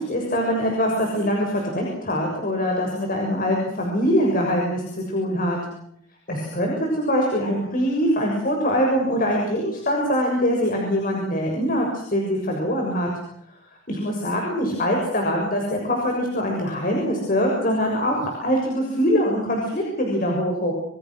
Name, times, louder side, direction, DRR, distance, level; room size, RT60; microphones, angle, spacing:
voice 1, 0.0-5.6 6.3-13.1 13.9-20.7, equal, 45° left, 0 dB, 6.8 m, -23 dB
27.5 x 26.5 x 6.5 m, 0.68 s
head